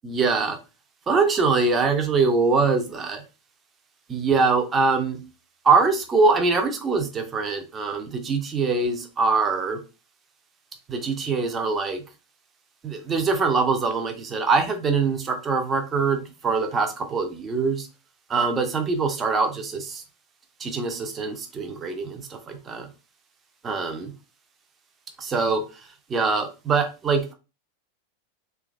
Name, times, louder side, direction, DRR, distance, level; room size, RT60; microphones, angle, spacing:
voice 1, 0.0-0.6 1.1-3.2 4.1-5.2 5.6-9.8 10.9-12.0 12.8-17.9 18.3-20.0 20.6-22.9 23.6-24.1 25.2-25.6 26.1-27.3, right 4 dB, 20° right, 5 dB, 0.5 m, -23 dB
3.0 x 2.2 x 2.3 m, 0.31 s
figure-of-eight pair, 90°, 0 cm